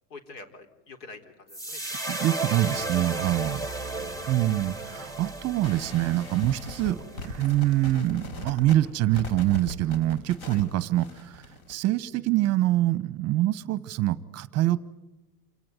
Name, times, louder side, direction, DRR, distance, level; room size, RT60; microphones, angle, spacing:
voice 1, 0.1-1.8 3.5-3.8 10.4-10.6, left 3 dB, 90° left, 7 dB, 4.1 m, -46 dB
sound 1, 1.5-7.8, right 2 dB, 5° left, 1.2 m, -35 dB
voice 2, 2.1-3.7 4.3-14.8, right 15 dB, 30° right, 17 dB, 0.8 m, -25 dB
sound 2, 5.6-11.8, left 2 dB, 60° left, 4.7 m, -40 dB
28.0 x 18.0 x 9.3 m, 1.0 s
supercardioid pair, 145°, 49 cm